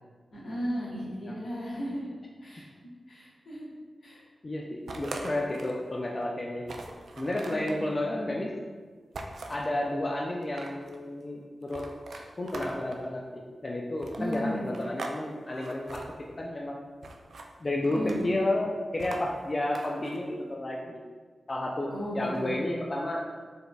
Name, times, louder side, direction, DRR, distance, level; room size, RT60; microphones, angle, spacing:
voice 1, 0.3-2.1 2.4-2.6 3.1-3.7 4.0-4.2 7.4-8.3 12.1-12.2 14.2-14.6 17.9-18.3 21.9-22.6, equal, 85° left, -8 dB, 1.2 m, -35 dB
voice 2, 4.4-6.6 7.2-8.5 9.5-11.8 12.4-16.0 16.4-16.8 17.6-21.0 21.5-23.2, left 1 dB, 40° left, -1 dB, 0.4 m, -31 dB
sound 1, 4.9-5.8 6.2-6.3 6.6-7.8 9.1-9.7 10.3-11.0 11.7-13.0 14.0-15.2 15.5-16.1 17.0-17.5 17.8-18.4 19.0-20.2, right 2 dB, 80° right, 0.3 m, -41 dB
4.1 x 3.3 x 2.3 m, 1.5 s
cardioid pair, 50°, 0 cm